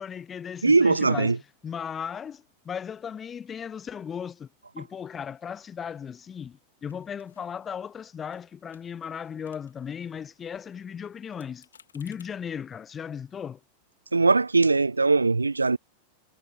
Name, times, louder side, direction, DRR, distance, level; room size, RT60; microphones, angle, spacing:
voice 1, 0.0-4.5 4.7-11.7 11.9-13.6, left 7 dB, 20° left, 0.4 m, -36 dB
voice 2, 0.6-1.4 14.1-15.8, right 3 dB, 80° right, 0.4 m, -20 dB
sound 1, 6.8-8.0 8.3-8.4 8.7-10.0 10.3-12.4, left 7 dB, 70° left, 2.9 m, -59 dB
figure-of-eight pair, 90°, 0 cm